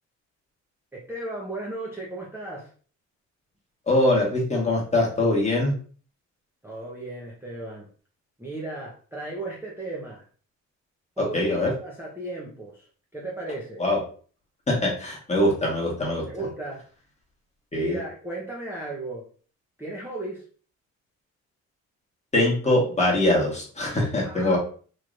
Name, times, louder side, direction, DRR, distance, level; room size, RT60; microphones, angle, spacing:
voice 1, 0.9-2.7 6.6-7.9 8.4-10.3 11.2-13.8 16.2-16.8 17.7-19.2 19.8-20.5 24.2-24.6, right 2 dB, 10° right, -5 dB, 0.9 m, -35 dB
voice 2, 3.9-5.7 11.3-11.7 13.8-14.0 14.7-16.2 17.7-18.0 22.3-24.6, left 1 dB, 20° left, -2 dB, 1.4 m, -22 dB
3.2 x 2.8 x 2.6 m, 0.42 s
cardioid pair, 90°, 30 cm